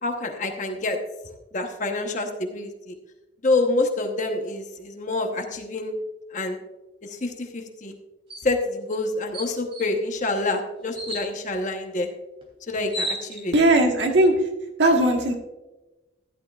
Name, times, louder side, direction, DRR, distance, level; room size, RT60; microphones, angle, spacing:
voice 1, 0.0-1.0 1.5-3.0 3.4-5.9 6.3-6.6 7.0-7.9 8.4-12.1 12.7-13.5, left 2 dB, 45° left, 4 dB, 1.0 m, -27 dB
sound 1, 8.3-8.5 8.9-9.0 9.3-9.9 10.9-11.3 12.4-12.5 12.7-13.7, right 1 dB, 30° right, 3.0 m, -32 dB
voice 2, 13.5-14.5 14.8-15.3, right 1 dB, 75° right, 2 dB, 1.4 m, -18 dB
15.0 x 11.0 x 2.4 m, 1.1 s
head